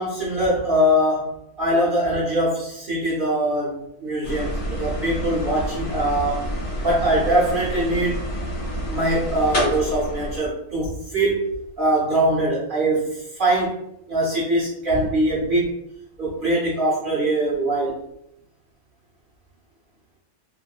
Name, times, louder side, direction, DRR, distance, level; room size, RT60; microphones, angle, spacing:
voice 1, 0.0-6.4 6.8-8.3 8.9-11.5 11.8-13.7 14.1-15.7 16.2-17.9, right 1 dB, 55° right, -6 dB, 0.6 m, -22 dB
sound 1, 4.2-10.4, equal, 60° left, 1.3 m, -28 dB
3.0 x 2.4 x 2.3 m, 0.83 s
omnidirectional pair, 1.6 m